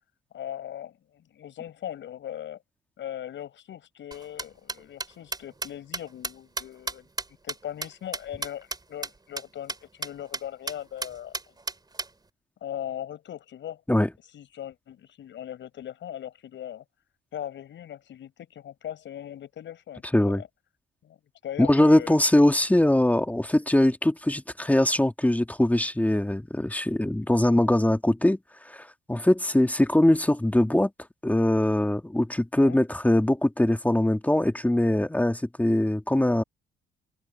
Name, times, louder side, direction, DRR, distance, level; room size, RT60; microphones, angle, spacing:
voice 1, 0.3-2.6 3.0-7.1 7.4-11.4 12.6-13.8 14.3-16.8 17.3-20.5 21.0-22.2 32.6-32.8, left 10 dB, 70° left, 7.0 m, -39 dB
sound 1, 4.1-8.8 9.0-9.1 9.4-9.5 9.7-9.8 10.0-10.4 10.7-10.8 11.0-12.1, right 3 dB, 20° right, 3.8 m, -33 dB
voice 2, 20.1-20.4 21.6-28.4 28.7-30.9 31.2-36.4, left 1 dB, 10° left, 2.2 m, -22 dB
cardioid pair, 90°, 20 cm